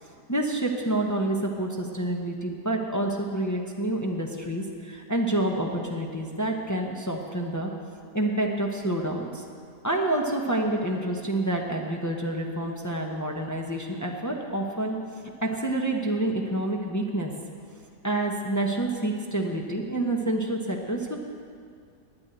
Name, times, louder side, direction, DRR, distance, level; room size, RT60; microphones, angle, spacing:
voice 1, 0.3-7.7 8.1-9.4 9.8-15.0 15.4-17.3 18.0-21.2, right 1 dB, 15° left, 0 dB, 0.7 m, -28 dB
9.8 x 9.6 x 8.9 m, 2.3 s
omnidirectional pair, 1.8 m